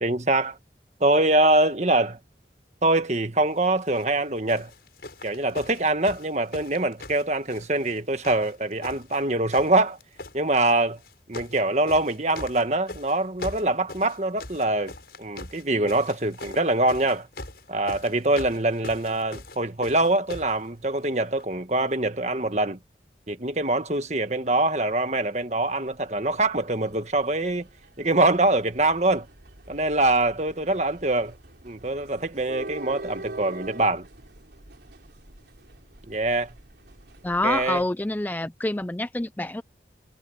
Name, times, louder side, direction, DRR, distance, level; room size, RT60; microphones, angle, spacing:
voice 1, 0.0-0.6 1.0-2.2 2.8-4.7 5.2-10.0 10.3-11.0 11.3-14.9 15.2-17.3 17.7-22.8 23.3-27.7 28.0-29.3 29.7-31.3 31.6-34.1 36.1-36.5 37.4-37.8, right 2 dB, 40° right, 1.7 m, -24 dB
sound 1, 3.8-4.1 4.5-8.0 8.2-9.2 9.5-10.4 11.0-11.6 11.9-20.6 21.4-21.5, left 2 dB, 65° left, 6.6 m, -41 dB
sound 2, 25.9-37.9, right 2 dB, 75° right, 3.4 m, -44 dB
voice 2, 37.2-39.6, left 2 dB, 10° left, 0.4 m, -27 dB
head